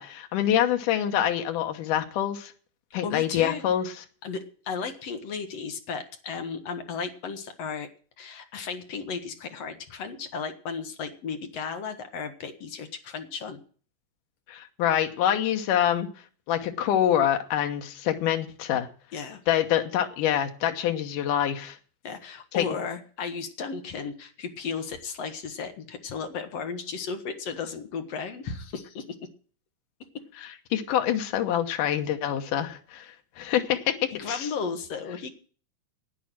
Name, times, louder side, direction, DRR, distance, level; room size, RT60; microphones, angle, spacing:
voice 1, 0.0-2.5 2.9-4.0 14.5-16.1 16.5-18.9 19.5-21.8 22.5-22.7 30.4-33.9 34.3-34.5, left 10 dB, 85° left, 5 dB, 2.7 m, -26 dB
voice 2, 3.0-3.6 4.2-7.9 8.2-13.6 19.1-19.4 22.0-29.2 34.2-35.3, left 5 dB, 60° left, 7 dB, 2.1 m, -35 dB
11.0 x 9.4 x 8.9 m, 0.44 s
omnidirectional pair, 3.6 m